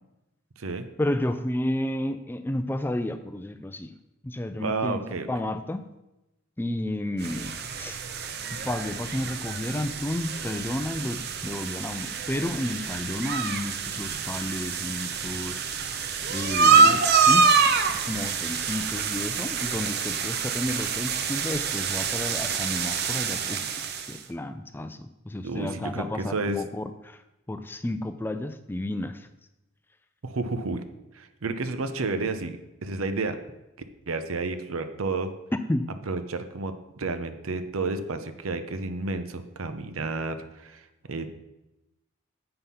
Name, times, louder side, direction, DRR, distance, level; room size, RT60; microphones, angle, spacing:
voice 1, 1.0-3.9 4.2-5.0 5.3-5.9 6.6-8.0 8.5-15.6 16.3-27.2 27.5-29.3 35.7-35.9, left 1 dB, 10° left, 10 dB, 0.3 m, -32 dB
voice 2, 4.6-5.3 16.6-17.0 25.4-26.6 30.2-30.8 31.1-32.6 32.8-33.4 34.1-35.3 36.1-41.3, right 3 dB, 85° right, 9 dB, 0.7 m, -31 dB
sound 1, 7.2-24.2, right 5 dB, 50° right, 0.6 m, -26 dB
7.8 x 5.5 x 5.6 m, 0.96 s
head